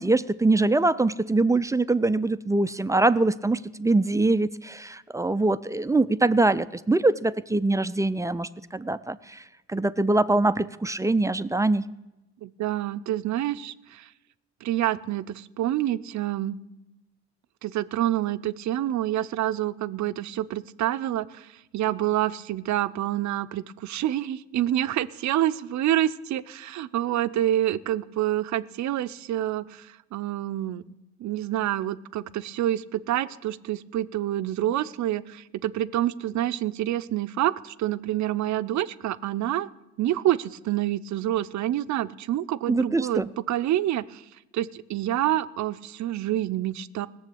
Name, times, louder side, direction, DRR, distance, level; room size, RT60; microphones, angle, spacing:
voice 1, 0.0-9.4 9.7-11.9 42.7-43.3, right 2 dB, 10° right, 14 dB, 0.4 m, -23 dB
voice 2, 12.4-14.1 14.6-16.6 17.6-30.8 31.2-39.7 40.0-44.2 44.5-47.1, right 13 dB, 70° right, 14 dB, 0.6 m, -27 dB
17.0 x 7.1 x 8.4 m, 0.98 s
cardioid pair, 90°, 30 cm